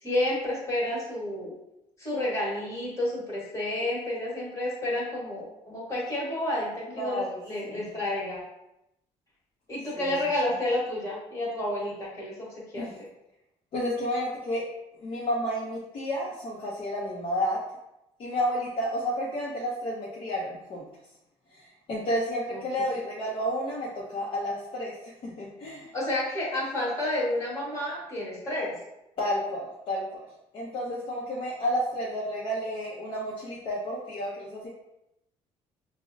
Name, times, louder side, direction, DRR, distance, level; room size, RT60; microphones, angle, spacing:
voice 1, 0.0-1.5 2.0-8.4 9.7-13.1 22.5-22.6 25.9-28.8, left 1 dB, 25° left, -5 dB, 1.2 m, -30 dB
voice 2, 6.9-7.9 10.0-10.1 12.7-12.9 13.7-14.7 15.0-17.6 18.2-20.9 21.5-25.0 25.2-25.9 29.2-30.2 30.5-34.7, equal, 45° left, -5 dB, 0.6 m, -31 dB
5.0 x 2.0 x 2.5 m, 0.86 s
cardioid pair, 155°, 12 cm